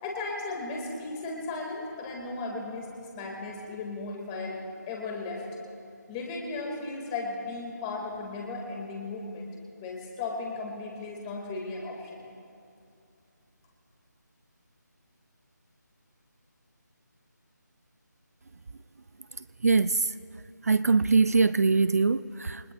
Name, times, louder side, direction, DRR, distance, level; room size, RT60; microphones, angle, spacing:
voice 1, 0.0-4.6 4.9-5.4 6.1-9.5 9.8-12.3, left 3 dB, 15° left, 0 dB, 2.3 m, -36 dB
voice 2, 19.6-20.1 20.6-22.7, right 4 dB, 55° right, 14 dB, 0.4 m, -23 dB
29.0 x 20.0 x 2.5 m, 2.6 s
figure-of-eight pair, 160°, 10 cm